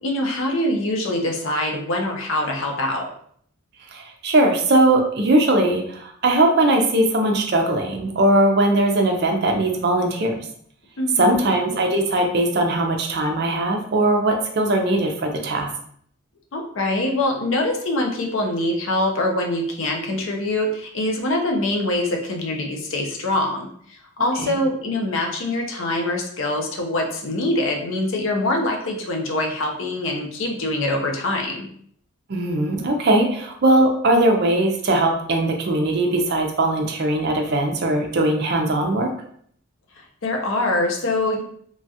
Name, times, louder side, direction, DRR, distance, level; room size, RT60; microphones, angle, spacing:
voice 1, 0.0-3.1 11.0-11.5 16.5-31.7 40.2-41.4, left 1 dB, 70° left, 2 dB, 0.6 m, -24 dB
voice 2, 3.9-10.4 11.2-15.7 24.4-24.5 32.3-39.1, right 1 dB, 50° right, 2 dB, 0.5 m, -20 dB
3.0 x 2.3 x 2.7 m, 0.63 s
head